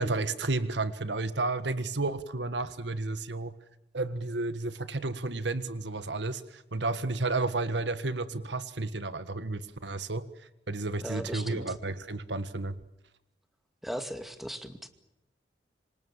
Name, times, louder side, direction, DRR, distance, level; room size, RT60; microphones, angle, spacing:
voice 1, 0.0-3.6 3.9-10.3 10.7-12.8, right 3 dB, 90° right, 12 dB, 1.7 m, -32 dB
voice 2, 11.0-11.7 13.8-14.9, equal, ahead, 7 dB, 2.3 m, -38 dB
27.0 x 25.5 x 7.4 m, 0.90 s
head